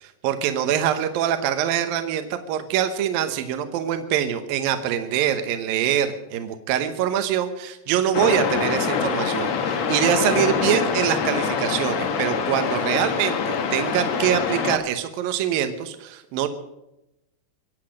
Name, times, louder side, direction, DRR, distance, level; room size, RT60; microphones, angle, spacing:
voice 1, 0.0-16.5, right 10 dB, 70° right, 8 dB, 2.5 m, -24 dB
sound 1, 8.1-14.8, left 6 dB, 75° left, 1.5 m, -25 dB
24.5 x 8.4 x 6.4 m, 0.90 s
omnidirectional pair, 5.0 m